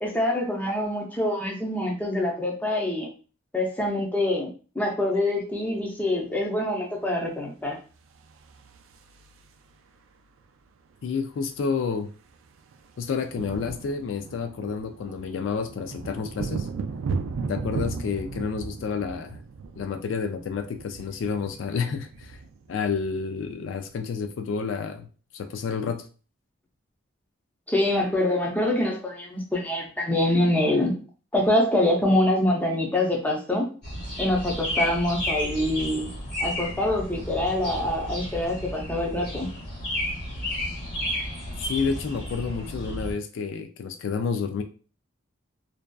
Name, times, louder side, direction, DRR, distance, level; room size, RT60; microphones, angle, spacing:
voice 1, 0.0-3.1 3.5-4.5 4.8-7.8 27.7-30.9 31.3-33.7 34.2-36.1 36.4-39.5, left 1 dB, 10° left, -1 dB, 0.5 m, -25 dB
sound 1, 8.2-9.7 11.0-11.1 11.3-11.5 11.8-23.9, right 4 dB, 90° right, 0.3 m, -36 dB
voice 2, 11.0-12.1 13.0-16.7 17.5-19.4 19.8-22.4 22.7-25.1 25.3-26.0 41.6-44.6, left 5 dB, 70° left, 7 dB, 0.3 m, -30 dB
sound 2, 33.8-43.1, left 1 dB, 55° left, 1.3 m, -32 dB
2.6 x 2.3 x 2.2 m, 0.37 s
head